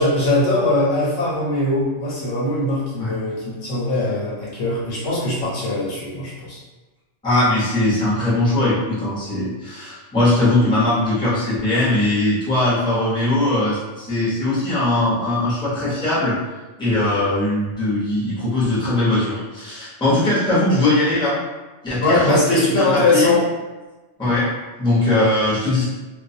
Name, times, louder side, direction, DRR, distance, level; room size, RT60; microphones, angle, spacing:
voice 1, 0.0-6.6 22.0-23.5, left 2 dB, 85° left, -6 dB, 1.2 m, -21 dB
voice 2, 7.2-16.4 16.8-21.4 21.8-23.3 24.2-24.5 24.8-25.9, left 2 dB, 5° left, -9 dB, 0.7 m, -20 dB
2.4 x 2.2 x 2.7 m, 1.2 s
omnidirectional pair, 1.3 m